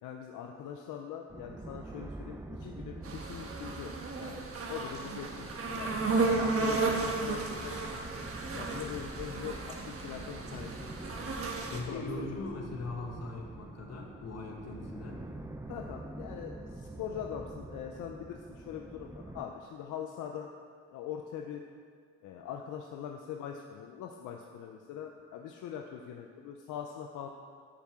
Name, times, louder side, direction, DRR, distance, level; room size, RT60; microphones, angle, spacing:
voice 1, 0.0-5.9 6.4-7.7 8.5-11.0 11.9-12.7 15.7-20.5 20.9-21.7 22.2-27.3, left 8 dB, 80° left, 2 dB, 0.7 m, -42 dB
sound 1, 1.3-19.4, right 2 dB, 10° right, 0.6 m, -46 dB
sound 2, 3.0-11.8, right 3 dB, 50° right, 1.3 m, -34 dB
voice 2, 11.7-15.3, left 2 dB, 55° left, 1 dB, 1.7 m, -40 dB
8.5 x 5.7 x 6.2 m, 2.1 s
cardioid pair, 90°, 30 cm